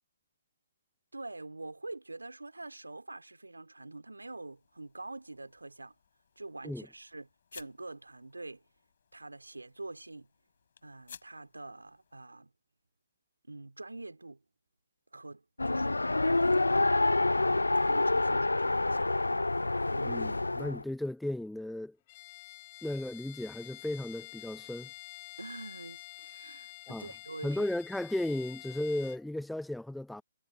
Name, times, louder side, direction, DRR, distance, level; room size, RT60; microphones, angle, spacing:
voice 1, 1.1-5.9 6.4-8.6 9.1-10.3 10.8-12.5 13.4-14.4 15.1-17.1 17.4-19.1 19.9-20.1 25.4-27.7, right 2 dB, 85° right, 3.1 m, -45 dB
sound 1, 4.5-12.3, left 7 dB, 55° left, 7.5 m, -58 dB
Race car auto racing, 15.6-20.8, left 2 dB, 85° left, 0.4 m, -27 dB
voice 2, 20.0-22.0 22.8-24.9 26.9-27.1 27.4-30.2, left 1 dB, ahead, 0.5 m, -35 dB
Bowed string instrument, 22.1-29.2, left 20 dB, 30° left, 4.0 m, -49 dB
figure-of-eight pair, 135°, 0 cm